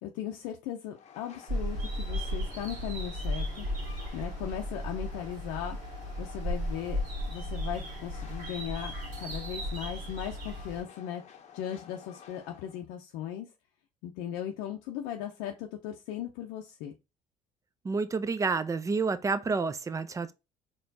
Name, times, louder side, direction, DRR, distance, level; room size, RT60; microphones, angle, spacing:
voice 1, 0.0-3.7 4.1-5.8 6.2-7.0 7.3-8.9 9.2-13.5 14.0-16.9, left 10 dB, 85° left, 0.5 m, -38 dB
Train, 0.9-12.8, left 7 dB, 45° left, 0.8 m, -52 dB
sound 1, 1.5-10.8, equal, 60° right, 1.8 m, -35 dB
voice 2, 17.8-20.3, right 4 dB, 20° right, 0.4 m, -29 dB
4.4 x 3.0 x 2.7 m
supercardioid pair, 90°, 15 cm